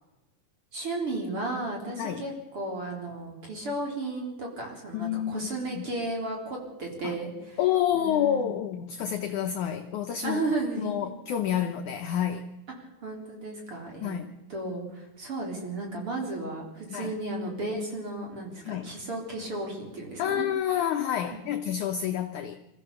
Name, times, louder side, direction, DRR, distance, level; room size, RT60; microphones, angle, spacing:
voice 1, 0.7-7.6 7.9-8.5 10.2-11.0 13.0-14.2 14.5-20.5 21.3-21.4, right 2 dB, 35° right, 0 dB, 4.3 m, -34 dB
voice 2, 4.9-5.5 5.8-5.9 7.0-7.2 7.6-10.4 10.8-12.4 14.0-14.3 16.9-17.1 18.6-18.9 20.2-22.6, left 10 dB, 80° left, 6 dB, 1.7 m, -28 dB
26.5 x 14.0 x 6.9 m, 1.0 s
omnidirectional pair, 4.8 m